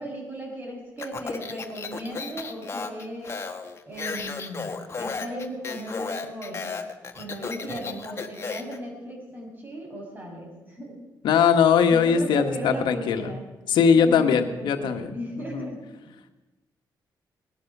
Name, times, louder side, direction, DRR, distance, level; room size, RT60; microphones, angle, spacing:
voice 1, 0.0-3.4 3.9-6.7 7.2-11.0 11.9-13.5 13.9-15.8, right 1 dB, 25° right, -1 dB, 6.0 m, -36 dB
Speech, 1.0-8.8, left 5 dB, 35° left, 1.3 m, -34 dB
voice 2, 11.2-13.3 13.7-15.1 15.4-15.7, left 7 dB, 90° left, 7 dB, 1.3 m, -20 dB
19.5 x 10.5 x 6.0 m, 1.1 s
cardioid pair, 115°, 8 cm